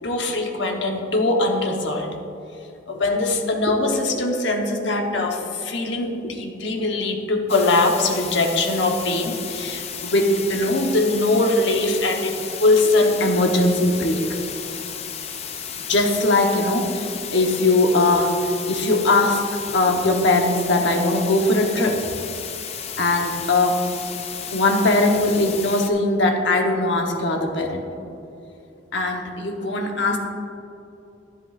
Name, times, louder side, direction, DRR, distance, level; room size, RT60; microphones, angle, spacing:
voice 1, 0.0-2.1 2.9-14.2 15.9-18.3 18.7-19.5 19.7-22.1 23.0-23.8 24.5-27.8 28.9-30.2, left 2 dB, 70° left, 3 dB, 1.0 m, -21 dB
sound 1, 7.5-25.9, left 7 dB, 35° left, 0.5 m, -33 dB
11.0 x 10.0 x 2.4 m, 2.8 s
head